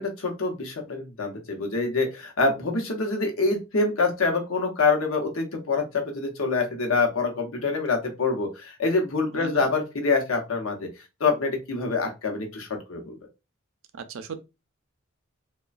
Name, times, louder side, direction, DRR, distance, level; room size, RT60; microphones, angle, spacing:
voice 1, 0.0-10.9 11.2-13.2, left 3 dB, 75° left, 0.8 m, -26 dB
voice 2, 9.3-9.7 13.9-14.4, right 6 dB, 70° right, 0.4 m, -37 dB
3.0 x 2.2 x 2.4 m
head